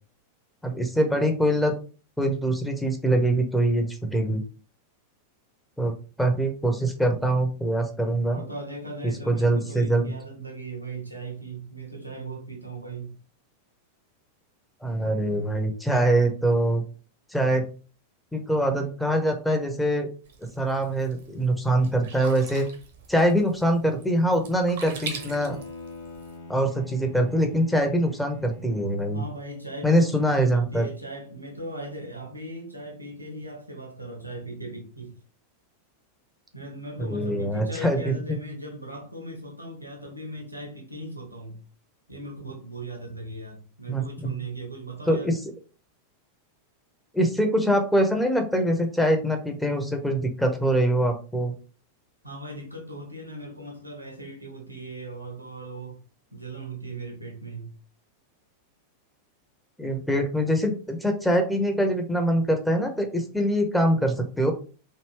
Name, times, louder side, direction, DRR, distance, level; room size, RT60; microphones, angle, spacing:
voice 1, 0.6-1.7 2.2-4.4 5.8-8.4 9.0-10.0 14.8-16.8 17.3-17.7 18.3-20.1 20.6-22.7 23.1-25.6 26.5-29.2 29.8-30.9 37.0-38.1 43.9-44.0 45.1-45.3 47.1-51.5 59.8-64.5, right 1 dB, 5° left, 0.7 m, -23 dB
voice 2, 8.3-13.2 29.1-35.2 36.5-41.6 42.1-45.3 52.2-56.0 56.3-57.7, right 2 dB, 90° right, 1.1 m, -38 dB
Sink (filling or washing), 20.2-26.4, right 5 dB, 55° right, 0.8 m, -43 dB
Bowed string instrument, 24.8-29.3, left 2 dB, 55° left, 0.9 m, -43 dB
3.2 x 2.6 x 3.1 m
figure-of-eight pair, 90°, 0 cm